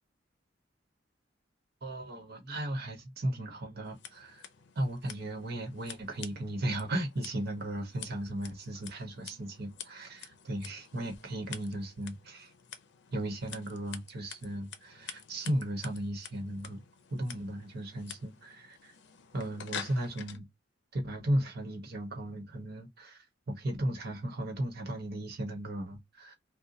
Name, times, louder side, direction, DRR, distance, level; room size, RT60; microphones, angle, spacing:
voice 1, 1.8-4.4 4.7-12.5 13.1-16.8 17.1-18.9 19.3-20.5 20.9-26.3, right 1 dB, 60° right, 1.2 m, -36 dB
Scissors, 3.8-20.4, left 8 dB, 65° left, 0.5 m, -49 dB
2.8 x 2.2 x 3.8 m
head